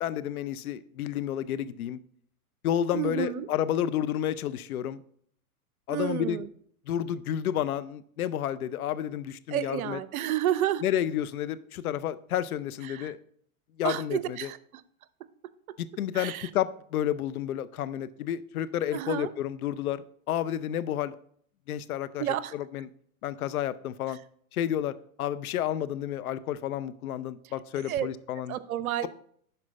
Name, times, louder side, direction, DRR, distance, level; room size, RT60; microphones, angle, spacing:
voice 1, 0.0-2.0 2.6-5.0 5.9-6.4 6.9-10.0 10.8-13.2 13.8-14.5 15.8-21.2 21.7-22.2 22.5-22.9 23.2-24.2 24.5-24.9 25.2-28.6, left 10 dB, 75° left, 14 dB, 0.7 m, -30 dB
voice 2, 2.9-3.5 5.9-6.5 9.5-10.8 12.8-13.1 13.8-14.8 16.1-16.5 18.9-19.3 22.2-22.5 27.9-28.1 28.5-29.1, right 12 dB, 70° right, 15 dB, 0.8 m, -30 dB
11.0 x 4.6 x 4.2 m, 0.62 s
hypercardioid pair, 110°, 44 cm